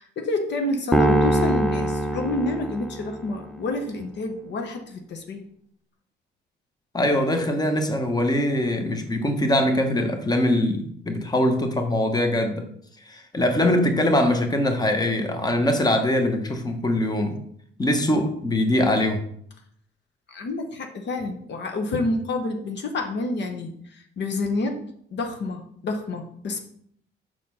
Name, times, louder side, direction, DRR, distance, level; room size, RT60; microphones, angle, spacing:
voice 1, 0.0-5.4 20.3-24.8 25.1-26.6, left 2 dB, 60° left, 5 dB, 1.0 m, -28 dB
sound 1, 0.9-3.3, right 1 dB, 5° left, 0.8 m, -22 dB
voice 2, 6.9-12.6 13.1-17.4 17.8-19.2, left 1 dB, 20° left, 5 dB, 1.2 m, -22 dB
6.3 x 4.2 x 5.5 m, 0.66 s
cardioid pair, 90°, 20 cm